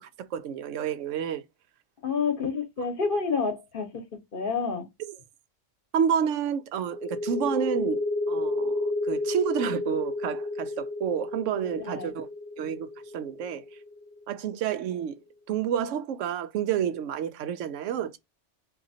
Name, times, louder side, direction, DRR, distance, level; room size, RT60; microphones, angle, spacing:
voice 1, 0.0-1.4 5.1-5.2 5.9-8.0 8.3-12.3 12.6-12.9 13.1-13.6 14.3-15.2 15.5-18.2, right 8 dB, 90° right, 0.9 m, -29 dB
voice 2, 2.0-4.0 4.3-4.8 11.8-12.1, left 5 dB, 50° left, 1.1 m, -28 dB
sound 1, 6.9-14.3, left 2 dB, 10° left, 0.6 m, -31 dB
3.8 x 2.8 x 2.6 m
omnidirectional pair, 1.2 m